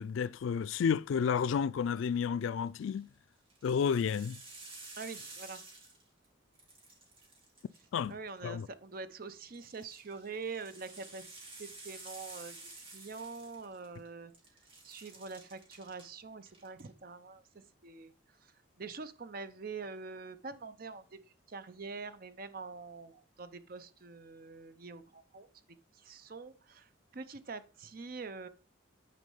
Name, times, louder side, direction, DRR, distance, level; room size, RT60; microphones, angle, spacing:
voice 1, 0.0-3.1 3.6-4.4 7.9-8.1 8.4-8.7, left 7 dB, 75° left, 0.3 m, -31 dB
sound 1, 2.7-3.0 3.5-6.3 6.5-8.4 9.5-14.1 14.3-16.1 16.4-16.9, right 3 dB, 25° right, 2.1 m, -51 dB
voice 2, 5.0-5.6 8.1-14.3 14.8-18.1 18.4-18.5 18.8-21.2 21.5-28.5, right 4 dB, 45° right, 0.6 m, -45 dB
9.2 x 4.3 x 5.5 m
head